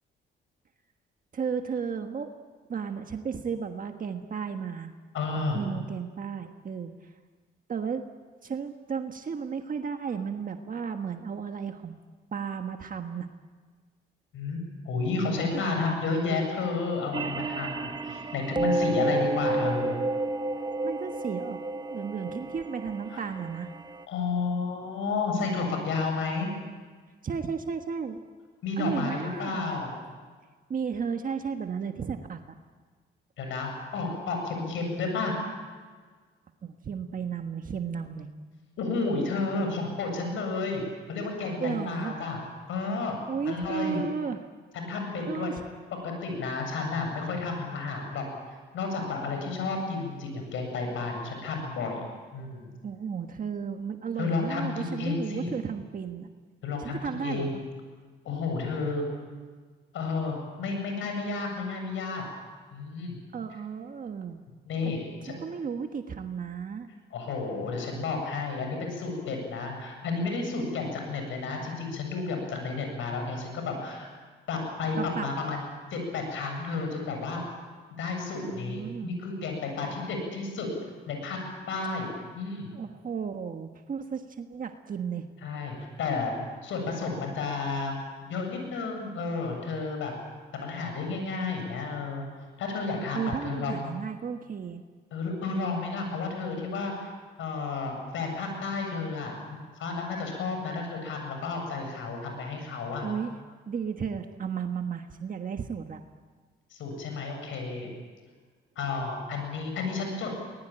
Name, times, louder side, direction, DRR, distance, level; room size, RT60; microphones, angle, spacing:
voice 1, 1.3-2.3 2.7-4.9 5.5-7.1 7.7-8.1 8.4-11.9 12.3-13.3 15.5-15.6 20.8-21.6 21.9-23.7 27.2-28.2 28.8-29.6 30.7-32.4 36.6-38.3 41.6-42.2 43.3-44.4 45.3-45.6 52.8-56.3 56.8-57.6 63.3-64.4 64.8-64.9 65.3-66.9 75.0-75.3 78.4-79.2 82.7-85.2 93.1-94.8 103.0-103.3 103.7-106.0, right 6 dB, 45° right, 6 dB, 1.5 m, -34 dB
voice 2, 5.1-5.6 14.3-20.0 23.1-23.3 24.1-26.5 28.6-29.9 33.4-35.4 38.8-40.8 41.1-42.4 42.7-43.2 43.5-44.0 44.7-45.5 46.0-52.0 52.3-52.7 54.2-55.5 56.6-57.5 58.2-59.0 59.9-62.2 62.7-63.2 64.7-65.3 67.1-74.1 74.5-75.6 75.9-77.4 78.0-80.7 81.1-81.4 81.7-82.7 85.4-86.3 86.6-90.1 90.5-92.3 92.6-93.9 95.1-97.1 97.4-103.1 106.7-107.9 108.8-110.4, left 4 dB, 80° left, 3 dB, 7.8 m, -32 dB
sound 1, 17.1-24.0, right 2 dB, 20° right, 1.2 m, -31 dB
23.5 x 20.5 x 9.0 m, 1.5 s
cardioid pair, 90°, 20 cm